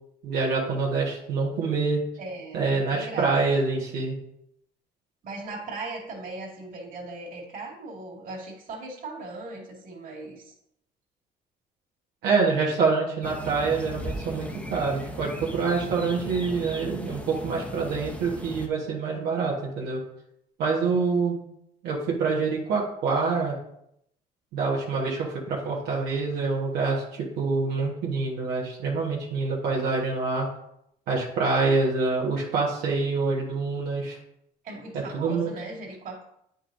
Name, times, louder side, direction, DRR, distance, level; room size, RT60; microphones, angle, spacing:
voice 1, 0.2-2.0 2.5-4.1 12.2-20.0 20.6-21.4 21.8-23.6 24.5-30.5 31.1-34.2 35.1-35.5, right 4 dB, 90° right, -4 dB, 1.4 m, -26 dB
voice 2, 2.2-3.4 5.2-10.6 34.6-36.2, right 3 dB, 55° right, -1 dB, 2.2 m, -38 dB
sound 1, 13.2-18.7, equal, 10° left, 0.8 m, -37 dB
8.6 x 5.5 x 2.6 m, 0.76 s
cardioid pair, 110°, 17 cm